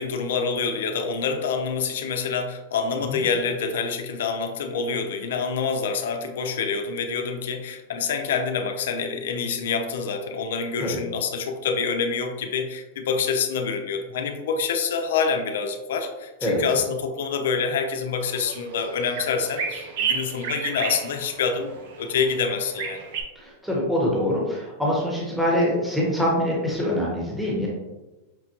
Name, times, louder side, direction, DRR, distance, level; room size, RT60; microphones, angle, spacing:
voice 1, 0.0-23.1, left 5 dB, 75° left, 6 dB, 0.5 m, -27 dB
sound 1, 18.2-23.2, right 6 dB, 65° right, 0.6 m, -32 dB
voice 2, 23.3-27.7, equal, 5° right, -4 dB, 1.2 m, -24 dB
5.8 x 2.2 x 2.9 m, 1.1 s
hypercardioid pair, 110°, 0 cm